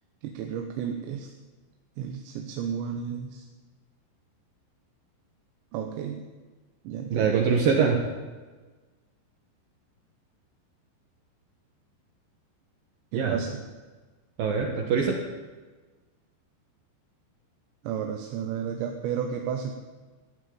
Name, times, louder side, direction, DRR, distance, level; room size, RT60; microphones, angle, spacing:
voice 1, 0.2-1.3 2.0-3.5 5.7-6.3 6.8-7.4 13.1-13.6 17.8-19.7, right 8 dB, 85° right, 4 dB, 3.4 m, -32 dB
voice 2, 7.1-8.1 13.1-13.4 14.4-15.2, right 6 dB, 65° right, 2 dB, 2.7 m, -23 dB
15.0 x 11.0 x 8.7 m, 1.3 s
omnidirectional pair, 5.1 m